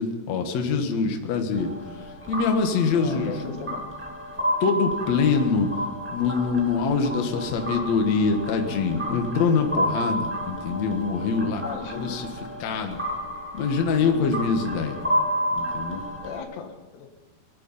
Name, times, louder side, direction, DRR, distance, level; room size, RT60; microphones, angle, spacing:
voice 1, 0.0-1.7 2.0-3.4 4.6-5.7 6.1-11.6 12.0-12.3 12.6-13.0 13.5-15.0 15.5-16.0, left 5 dB, 55° left, 4 dB, 2.1 m, -24 dB
sound 1, 1.5-16.4, equal, 10° right, 0.7 m, -31 dB
voice 2, 2.9-3.9 11.5-12.3 16.2-17.1, left 7 dB, 80° left, 6 dB, 3.4 m, -36 dB
23.0 x 11.0 x 5.5 m, 1.2 s
omnidirectional pair, 4.9 m